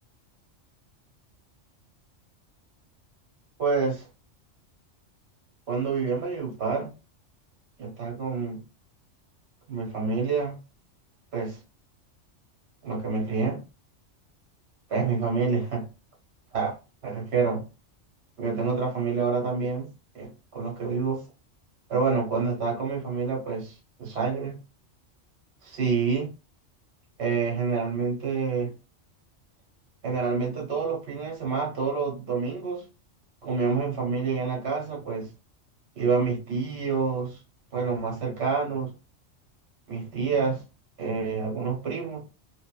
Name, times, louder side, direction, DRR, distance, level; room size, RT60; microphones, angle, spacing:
voice 1, 3.6-4.1 5.7-6.9 7.8-8.6 9.7-10.6 11.3-11.6 12.8-13.6 14.9-15.8 16.5-16.8 17.0-17.6 18.4-19.9 20.1-21.2 21.9-23.7 24.0-24.6 25.6-26.3 27.2-28.7 30.0-32.8 33.4-35.3 36.0-37.4 37.7-38.9 39.9-40.6 41.0-42.3, right 5 dB, 60° right, 1.2 m, -27 dB
2.6 x 2.1 x 2.2 m
omnidirectional pair, 1.3 m